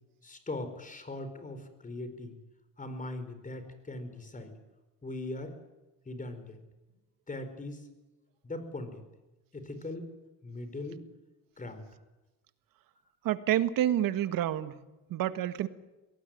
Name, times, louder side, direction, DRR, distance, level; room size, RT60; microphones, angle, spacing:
voice 1, 0.2-2.4 2.8-4.5 5.0-5.6 6.0-6.6 7.3-7.9 8.4-9.0 9.5-10.1 10.4-11.0 11.6-11.9, left 2 dB, 20° left, 9 dB, 4.8 m, -40 dB
voice 2, 13.2-14.8 15.1-15.7, right 12 dB, 70° right, 12 dB, 1.7 m, -28 dB
23.0 x 18.5 x 9.3 m, 1.1 s
cardioid pair, 100°, 35 cm